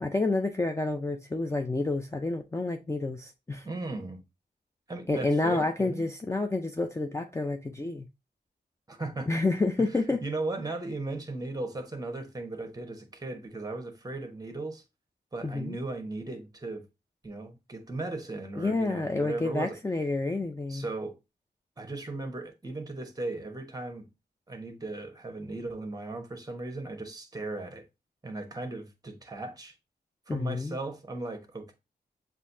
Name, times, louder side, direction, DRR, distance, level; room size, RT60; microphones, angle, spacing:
voice 1, 0.0-3.7 5.1-8.1 9.3-10.2 15.4-15.8 18.6-20.9 30.3-30.8, left 2 dB, 15° left, 0.5 m, -29 dB
voice 2, 3.6-4.2 4.9-6.1 8.9-9.4 9.8-9.9 10.2-14.8 15.3-16.8 17.2-19.8 20.7-21.2 21.8-24.1 24.5-27.8 28.2-29.7 30.3-31.7, right 2 dB, 20° right, 1.2 m, -37 dB
7.2 x 2.7 x 2.7 m
wide cardioid pair, 105°, 17 cm